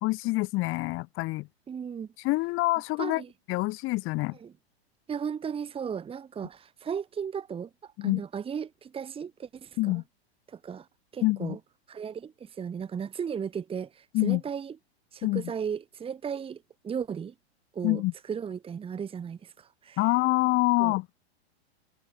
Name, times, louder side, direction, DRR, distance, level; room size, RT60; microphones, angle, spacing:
voice 1, 0.0-1.5 2.2-3.2 3.5-4.4 8.0-8.2 9.8-10.0 11.2-11.6 14.1-14.4 15.2-15.4 17.8-18.1 20.0-21.1, left 21 dB, 40° left, 2.5 m, -26 dB
voice 2, 1.7-2.1 3.0-3.3 4.3-4.5 5.1-10.0 10.5-10.9 11.1-11.6 11.9-14.8 15.1-17.3 17.7-18.0 18.3-20.0 20.8-20.9, right 7 dB, 15° right, 1.9 m, -36 dB
hypercardioid pair, 125°, 33 cm